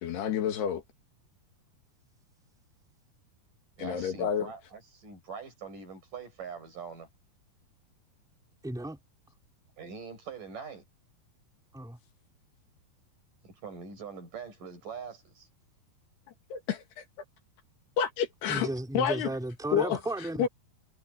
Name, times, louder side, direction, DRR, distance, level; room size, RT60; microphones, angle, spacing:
voice 1, 0.0-0.8 3.8-4.5 16.5-17.0 18.0-18.7 18.9-19.3 19.7-20.0 20.4-20.5, left 8 dB, 80° left, 4.1 m, -29 dB
voice 2, 3.8-7.1 9.8-10.8 13.4-15.5, right 6 dB, 55° right, 8.5 m, -43 dB
voice 3, 8.6-9.0 11.7-12.0 18.5-20.5, right 1 dB, ahead, 3.7 m, -34 dB
omnidirectional pair, 4.6 m